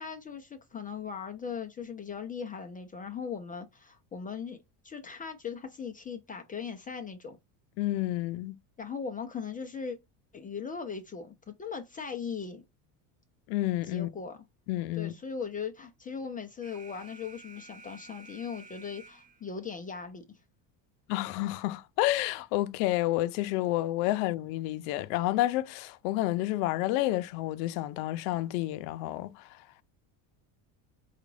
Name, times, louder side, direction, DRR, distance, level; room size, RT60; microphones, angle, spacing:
voice 1, 0.0-7.4 8.8-10.0 10.3-12.6 13.8-14.4 14.9-20.4, left 6 dB, 20° left, 0.4 m, -39 dB
voice 2, 7.8-8.5 13.5-14.1 14.7-15.1 21.1-29.6, left 16 dB, 80° left, 0.6 m, -30 dB
Alarm, 16.6-19.6, right 4 dB, 15° right, 0.7 m, -52 dB
4.9 x 2.3 x 3.1 m
cardioid pair, 130°, 47 cm